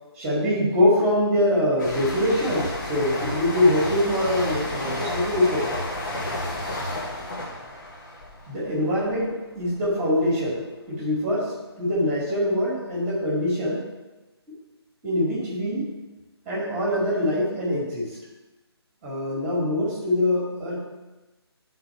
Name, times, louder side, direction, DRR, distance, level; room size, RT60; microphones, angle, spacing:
voice 1, 0.2-5.8 8.5-13.8 15.0-15.9 16.5-18.2 19.0-20.8, left 1 dB, 10° right, -6 dB, 1.9 m, -24 dB
sound 1, 1.8-9.3 9.6-9.9, left 1 dB, 45° left, 1.4 m, -31 dB
11.0 x 3.9 x 4.5 m, 1.1 s
figure-of-eight pair, 160°, 14 cm